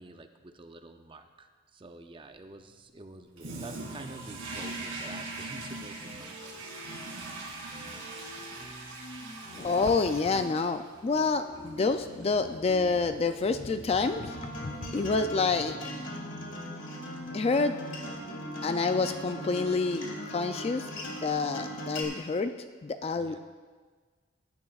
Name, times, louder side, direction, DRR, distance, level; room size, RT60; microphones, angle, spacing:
voice 1, 0.0-6.7 23.2-23.4, right 2 dB, 25° right, 7 dB, 0.5 m, -47 dB
Toilet flush, 3.4-15.7, right 2 dB, 85° right, 2.3 m, -43 dB
sound 1, 6.0-19.7, left 1 dB, 45° left, 2.3 m, -48 dB
voice 2, 9.5-14.3 14.6-15.8 17.3-17.8 18.6-22.5 22.8-23.4, left 4 dB, 30° left, 9 dB, 0.3 m, -28 dB
Acoustic guitar, 14.0-22.0, equal, 70° left, 1.7 m, -39 dB
16.5 x 9.6 x 2.4 m, 1.5 s
head